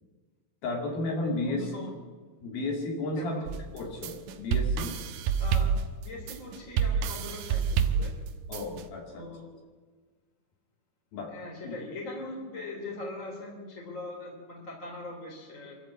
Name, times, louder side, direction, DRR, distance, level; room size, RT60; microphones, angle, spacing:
voice 1, 0.6-1.7 2.4-3.5 3.7-5.0 8.5-9.3 11.1-11.3 11.6-11.8, left 2 dB, 60° left, 1 dB, 4.1 m, -33 dB
voice 2, 1.4-1.9 3.2-3.4 5.4-5.7 6.0-8.1 9.1-9.5 11.3-15.8, left 2 dB, 20° left, -1 dB, 2.9 m, -41 dB
sound 1, 3.5-8.8, right 7 dB, 85° right, 3.3 m, -29 dB
24.5 x 13.0 x 8.3 m, 1.4 s
omnidirectional pair, 5.0 m